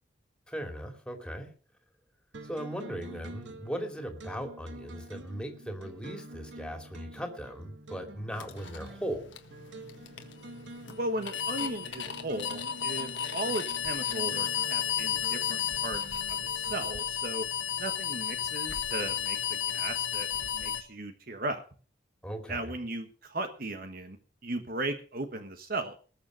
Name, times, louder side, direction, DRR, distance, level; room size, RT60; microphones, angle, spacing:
voice 1, 0.5-1.5 2.4-9.3 22.2-22.7, equal, 5° left, 4 dB, 2.8 m, -38 dB
sound 1, 2.3-17.1, right 2 dB, 75° right, 1.4 m, -48 dB
sound 2, 8.3-20.8, left 9 dB, 80° left, 1.6 m, -33 dB
voice 2, 11.0-16.2 16.5-17.4 17.8-20.3 20.5-21.6 22.5-24.2 24.4-26.0, right 2 dB, 50° right, 7 dB, 1.4 m, -36 dB
19.5 x 6.8 x 6.4 m, 0.40 s
head